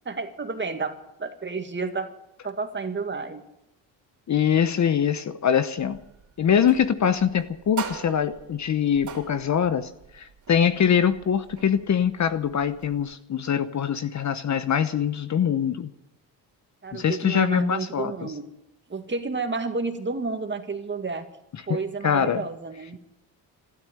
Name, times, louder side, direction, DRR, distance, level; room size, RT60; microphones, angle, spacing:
voice 1, 0.1-2.1 2.4-3.4 16.8-18.5 18.9-21.3 21.7-23.0, right 4 dB, 25° right, 7 dB, 2.0 m, -31 dB
voice 2, 4.3-6.0 6.4-15.9 16.9-18.3 21.7-22.4, left 8 dB, 40° left, 12 dB, 0.9 m, -23 dB
sound 1, 5.8-13.2, right 8 dB, 45° right, 3.2 m, -42 dB
12.5 x 12.5 x 9.0 m, 0.84 s
cardioid pair, 85°, 42 cm